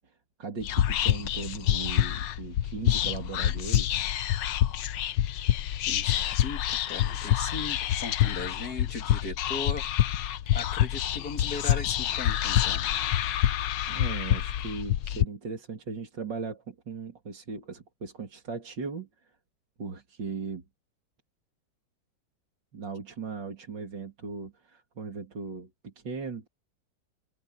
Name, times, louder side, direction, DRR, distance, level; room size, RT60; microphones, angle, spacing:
voice 1, 0.4-4.0 13.9-19.3 19.8-20.6 22.7-26.5, right 4 dB, 75° right, 3.5 m, -38 dB
Whispering, 0.6-15.2, left 12 dB, 75° left, 1.4 m, -27 dB
voice 2, 5.9-9.9 10.5-12.8, left 3 dB, 55° left, 2.7 m, -38 dB
omnidirectional pair, 2.0 m